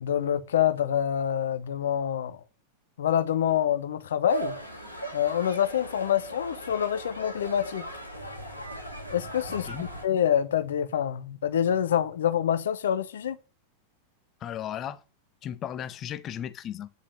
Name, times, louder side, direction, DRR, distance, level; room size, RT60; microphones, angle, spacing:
voice 1, 0.0-2.4 3.0-4.5 5.1-7.9 9.1-9.7 10.0-13.4, left 9 dB, 65° left, 1.0 m, -26 dB
sound 1, 4.3-10.1, right 2 dB, 90° right, 2.7 m, -38 dB
voice 2, 9.5-9.8 14.4-15.0 15.4-16.9, left 10 dB, 30° left, 0.7 m, -35 dB
9.3 x 5.2 x 6.8 m
figure-of-eight pair, 90°, 0 cm